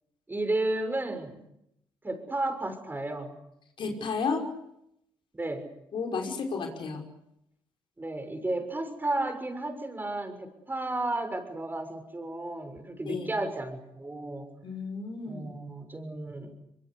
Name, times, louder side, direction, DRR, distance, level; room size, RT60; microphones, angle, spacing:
voice 1, 0.3-1.4 2.0-3.3 5.3-5.7 8.0-14.5 15.2-16.5, right 2 dB, 20° right, 7 dB, 6.7 m, -33 dB
voice 2, 3.8-4.5 5.9-7.0 13.1-13.4 14.6-15.5, left 4 dB, 60° left, 3 dB, 5.7 m, -32 dB
24.0 x 23.0 x 8.4 m, 0.81 s
supercardioid pair, 65°, 10 cm